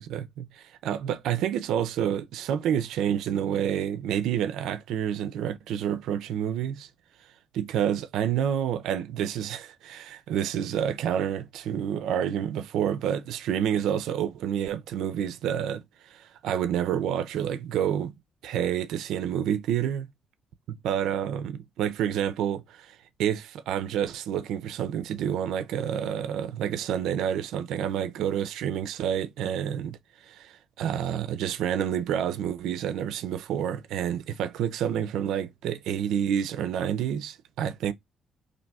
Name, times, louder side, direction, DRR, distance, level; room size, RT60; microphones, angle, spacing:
voice 1, 0.1-6.9 7.5-18.1 18.4-20.1 20.7-37.9, right 9 dB, 85° right, 0.3 m, -29 dB
2.6 x 2.2 x 4.0 m
cardioid pair, 90°, 0 cm